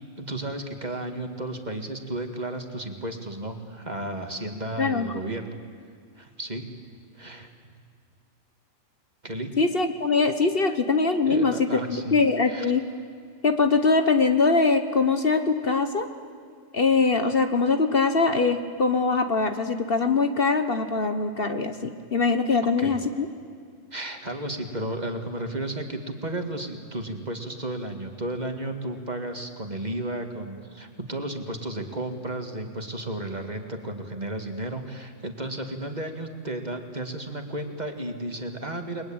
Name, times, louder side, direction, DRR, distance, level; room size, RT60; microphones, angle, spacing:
voice 1, 0.2-5.6 6.2-6.7 7.1-7.8 9.2-9.5 11.3-12.2 12.5-12.7 22.6-22.9 23.9-39.1, right 1 dB, 35° right, 5 dB, 2.3 m, -33 dB
voice 2, 4.8-5.1 9.6-12.8 13.4-16.1 16.7-23.3, left 4 dB, 50° left, 8 dB, 1.5 m, -22 dB
30.0 x 22.0 x 8.9 m, 2.2 s
omnidirectional pair, 1.3 m